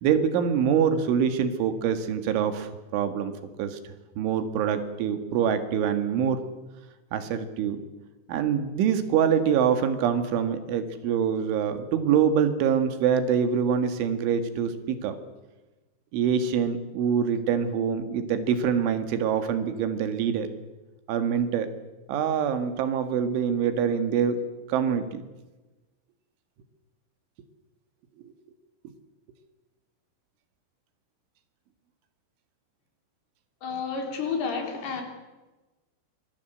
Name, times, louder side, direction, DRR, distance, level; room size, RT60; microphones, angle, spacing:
voice 1, 0.0-3.3 3.6-3.8 4.2-6.4 7.1-7.8 8.3-15.2 16.1-20.5 21.1-21.7 22.1-24.4 24.7-25.2, right 7 dB, 90° right, 4.3 m, -25 dB
voice 2, 33.6-35.0, left 5 dB, 60° left, 5.7 m, -30 dB
25.5 x 20.0 x 8.1 m
omnidirectional pair, 5.3 m